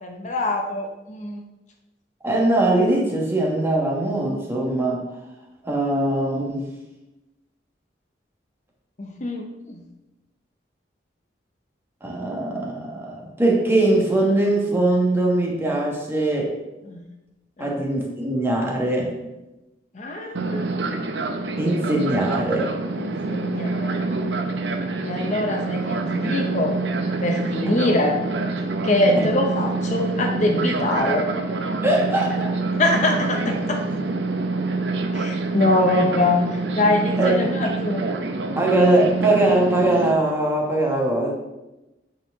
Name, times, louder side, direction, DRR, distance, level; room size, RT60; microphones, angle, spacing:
voice 1, 0.0-1.4 9.0-9.8 16.9-17.0 17.6-17.7 19.9-20.6 23.0-24.0 25.0-26.8 27.2-28.2 28.8-31.2 32.7-33.8 35.1-38.0, left 2 dB, 40° left, 2 dB, 0.6 m, -23 dB
voice 2, 2.2-5.0 5.6-6.7 12.0-16.5 17.6-19.2 21.6-22.8 29.1-29.2 31.8-32.6 37.2-37.3 38.6-41.3, right 1 dB, 15° right, -2 dB, 1.2 m, -21 dB
Fixed-wing aircraft airplane, 20.4-40.1, right 3 dB, 70° right, 0.6 m, -26 dB
8.5 x 4.4 x 3.5 m, 1.0 s
head